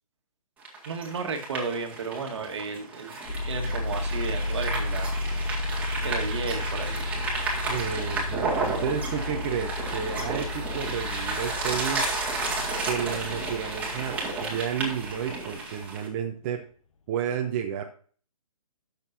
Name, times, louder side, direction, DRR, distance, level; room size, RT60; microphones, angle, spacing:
sound 1, 0.6-16.1, right 3 dB, 5° right, 1.8 m, -32 dB
voice 1, 0.8-3.1 3.4-5.1 6.0-7.0, right 4 dB, 50° right, 4 dB, 1.5 m, -33 dB
sound 2, 3.2-15.9, left 2 dB, 60° left, 1.0 m, -33 dB
voice 2, 7.7-12.1 12.8-16.6 17.1-17.8, right 8 dB, 25° right, 1 dB, 0.7 m, -31 dB
12.0 x 6.6 x 2.7 m, 0.43 s
figure-of-eight pair, 145°, 19 cm